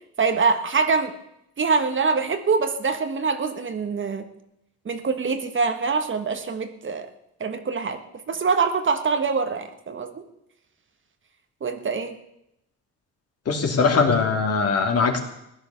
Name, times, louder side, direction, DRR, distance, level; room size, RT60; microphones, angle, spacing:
voice 1, 0.2-1.1 1.6-4.3 4.8-7.1 7.4-8.0 8.3-10.2 11.6-12.1, right 5 dB, 40° right, 8 dB, 1.6 m, -24 dB
voice 2, 13.5-15.2, left 4 dB, 55° left, 3 dB, 3.0 m, -21 dB
16.0 x 10.5 x 7.1 m, 0.82 s
cardioid pair, 90°, 30 cm